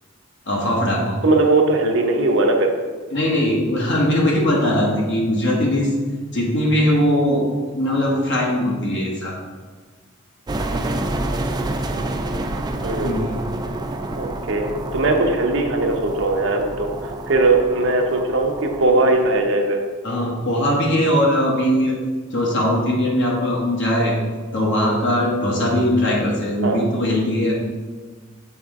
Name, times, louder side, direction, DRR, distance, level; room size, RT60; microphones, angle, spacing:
voice 1, 0.5-1.2 3.1-5.9 6.3-7.5 7.7-9.4 13.0-13.4 20.0-22.0 22.3-24.2 24.5-27.5, left 1 dB, 60° left, -3 dB, 1.1 m, -20 dB
voice 2, 1.2-2.7 12.8-13.2 14.2-19.8 26.6-26.8, right 2 dB, 65° right, 2 dB, 0.8 m, -19 dB
sound 1, 10.5-19.4, right 1 dB, 20° right, 0.3 m, -28 dB
6.9 x 4.3 x 3.6 m, 1.4 s
head